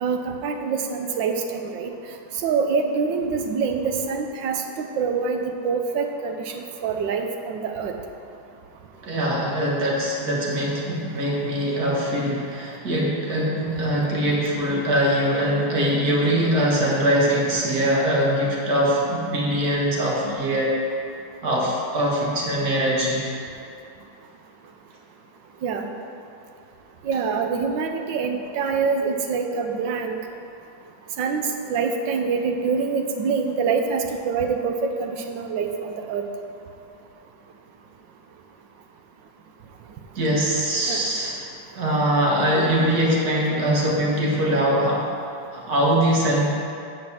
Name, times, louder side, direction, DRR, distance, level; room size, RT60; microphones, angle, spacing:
voice 1, 0.0-1.9 2.4-7.9 25.6-25.9 27.0-30.2 31.2-31.4 31.7-36.2 40.9-41.1, right 5 dB, 85° right, 4 dB, 1.5 m, -25 dB
voice 2, 9.0-20.8 21.4-23.4 40.2-41.4 41.7-45.2 45.5-46.5, equal, 55° right, -4 dB, 2.0 m, -22 dB
8.1 x 5.1 x 7.2 m, 2.6 s
omnidirectional pair, 2.0 m